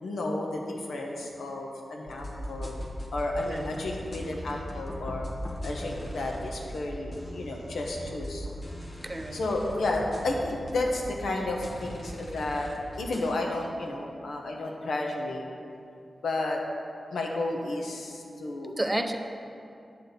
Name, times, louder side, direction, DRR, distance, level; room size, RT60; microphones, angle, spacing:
voice 1, 0.0-2.8 3.1-5.3 5.6-8.5 9.3-12.7 13.0-15.4 16.2-16.6 17.1-18.7, left 2 dB, 90° left, 0 dB, 1.1 m, -32 dB
sound 1, 2.1-13.3, equal, 45° left, 0.9 m, -39 dB
voice 2, 9.0-9.4 18.8-19.2, right 1 dB, 15° right, 6 dB, 0.4 m, -30 dB
8.7 x 4.2 x 6.7 m, 2.5 s
wide cardioid pair, 150°, 0 cm